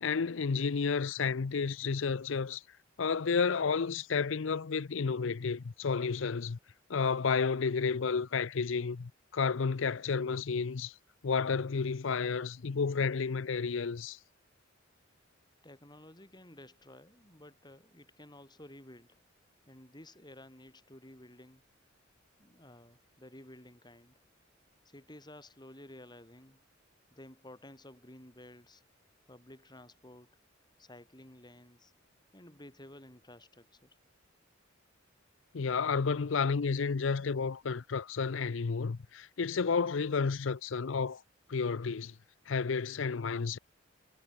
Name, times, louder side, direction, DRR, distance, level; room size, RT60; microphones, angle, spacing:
voice 1, 0.0-2.6 3.0-6.6 6.9-10.9 11.2-14.2 35.5-41.2 41.5-42.1 42.5-43.6, left 5 dB, 65° left, 0.6 m, -31 dB
voice 2, 15.6-19.2 19.7-21.6 22.4-24.2 24.9-26.6 27.1-28.8 29.3-30.3 30.8-31.9 32.3-34.0, left 1 dB, 20° left, 7.0 m, -53 dB
head